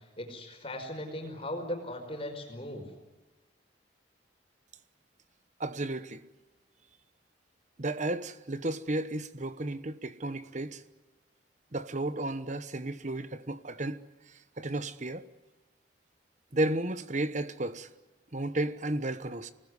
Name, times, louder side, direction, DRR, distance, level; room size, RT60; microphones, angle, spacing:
voice 1, 0.2-2.8, left 1 dB, 30° left, 5.2 m, -38 dB
voice 2, 5.6-6.2 7.8-10.8 11.7-14.0 14.6-15.3 16.5-17.9 18.3-19.5, right 2 dB, 40° right, 1.1 m, -33 dB
27.0 x 20.0 x 9.7 m
head